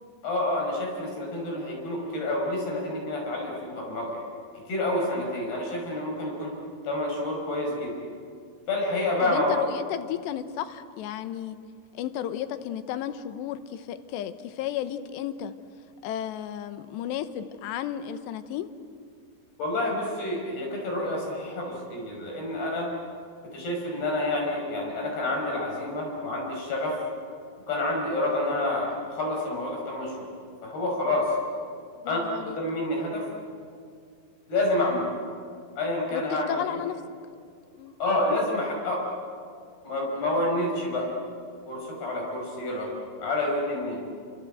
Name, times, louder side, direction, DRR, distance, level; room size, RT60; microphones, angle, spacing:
voice 1, 0.2-4.2 4.7-6.6 6.8-8.0 8.7-9.6 19.6-22.9 23.5-27.0 27.7-30.3 30.6-31.4 32.1-32.2 32.4-33.3 34.5-35.1 35.8-36.8 38.0-39.1 39.8-41.1 41.7-42.9 43.2-44.0, left 2 dB, 60° left, 0 dB, 7.4 m, -28 dB
voice 2, 9.2-11.6 11.9-15.5 16.0-18.7 32.0-32.6 36.1-37.0 37.8-38.0, left 11 dB, 75° left, 10 dB, 3.1 m, -33 dB
28.0 x 26.0 x 7.9 m, 2.2 s
omnidirectional pair, 5.2 m